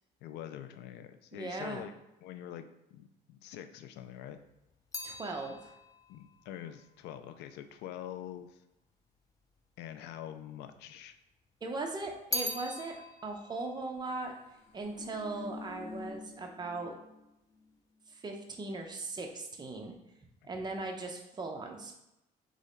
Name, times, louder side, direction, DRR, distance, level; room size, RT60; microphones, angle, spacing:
voice 1, 0.2-1.9 2.2-4.4 6.1-8.6 9.8-11.2 20.4-20.5, left 10 dB, 80° left, 9 dB, 0.4 m, -45 dB
voice 2, 1.3-1.8 5.0-5.7 11.6-12.9 13.2-14.3 14.7-16.9 18.1-19.9 20.4-21.9, right 3 dB, 25° right, 2 dB, 0.7 m, -39 dB
Bell ringing, 4.0-8.4 9.2-10.0 10.3-11.4 11.7-15.3 15.5-16.1, left 1 dB, 20° left, 0.5 m, -42 dB
sound 1, 14.6-17.2 17.5-17.7, left 3 dB, 35° left, 0.8 m, -46 dB
3.9 x 3.1 x 3.9 m, 0.88 s
cardioid pair, 110°, 17 cm